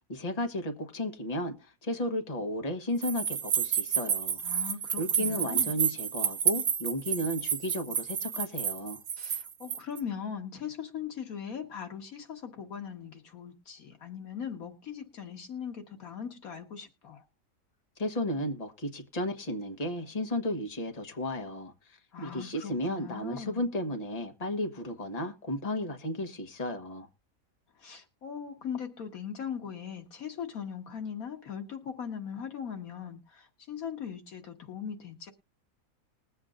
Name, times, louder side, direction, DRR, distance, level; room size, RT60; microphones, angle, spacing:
voice 1, 0.1-4.4 5.0-9.0 18.0-27.1, left 1 dB, 30° left, 1.4 m, -34 dB
sound 1, 3.0-10.0, right 8 dB, 80° right, 1.3 m, -30 dB
voice 2, 4.4-5.8 9.2-17.2 22.1-23.7 27.8-35.3, left 7 dB, 85° left, 1.9 m, -40 dB
20.5 x 7.9 x 2.5 m
omnidirectional pair, 1.5 m